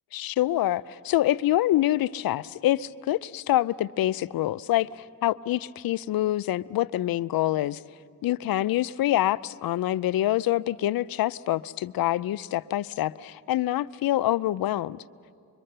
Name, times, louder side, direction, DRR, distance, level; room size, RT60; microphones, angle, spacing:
voice 1, 0.1-4.9 5.2-7.8 8.2-15.0, left 14 dB, 75° left, 0.5 m, -26 dB
24.5 x 23.0 x 6.7 m
cardioid pair, 60°, 36 cm